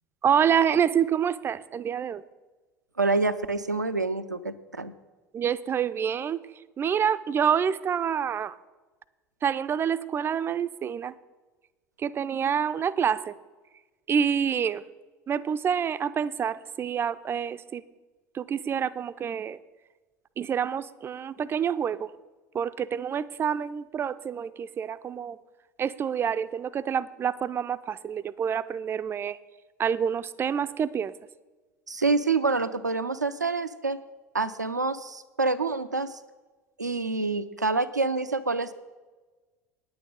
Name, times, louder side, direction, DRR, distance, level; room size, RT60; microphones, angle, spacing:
voice 1, 0.2-2.2 5.3-6.4 6.8-8.5 9.4-11.1 12.0-13.3 14.1-14.8 15.3-17.8 18.3-19.6 20.4-22.1 22.5-25.4 25.8-29.4 29.8-31.1, right 8 dB, 25° right, 14 dB, 0.4 m, -27 dB
voice 2, 3.0-4.9 31.9-34.0 34.3-36.2 36.8-38.7, right 3 dB, 85° right, 12 dB, 0.4 m, -27 dB
9.6 x 8.7 x 5.3 m, 1.3 s
figure-of-eight pair, 70°, 9 cm